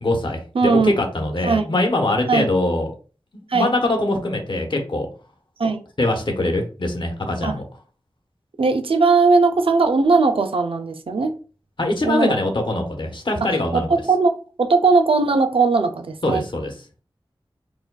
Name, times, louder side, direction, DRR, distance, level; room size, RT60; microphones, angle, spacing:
voice 1, 0.0-2.9 3.3-5.1 6.0-7.6 11.8-13.9 16.2-16.7, left 2 dB, 60° left, 1.0 m, -22 dB
voice 2, 0.5-1.0 1.4-1.7 2.3-2.5 3.5-3.7 5.6-5.8 7.4-7.6 8.6-11.3 12.0-12.4 13.4-16.4, right 4 dB, 85° right, 0.4 m, -19 dB
4.6 x 2.5 x 2.2 m
wide cardioid pair, 50°, 9 cm